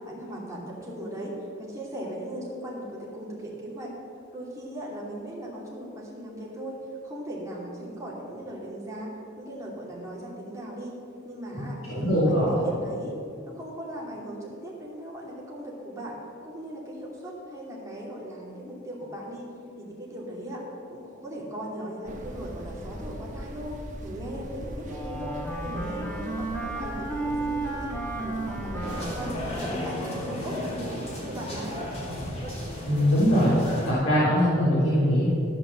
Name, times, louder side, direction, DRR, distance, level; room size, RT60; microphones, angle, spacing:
voice 1, 0.1-1.3 1.6-3.9 4.3-6.8 7.0-9.1 9.4-11.0 11.2-13.2 13.5-16.2 16.4-19.5 19.8-20.6 20.9-23.7 24.0-25.4 25.6-27.9 28.2-31.8, right 1 dB, 15° right, -4 dB, 2.6 m, -38 dB
voice 2, 11.9-12.6 32.9-33.5 33.8-35.3, equal, 90° left, -9 dB, 3.3 m, -22 dB
sound 1, 22.1-29.5, equal, 40° right, 1.3 m, -39 dB
Wind instrument woodwind instrument, 24.9-30.6, right 2 dB, 10° left, 1.4 m, -34 dB
sound 2, 28.8-33.9, left 1 dB, 30° left, 3.1 m, -34 dB
14.0 x 6.0 x 7.5 m, 2.6 s
head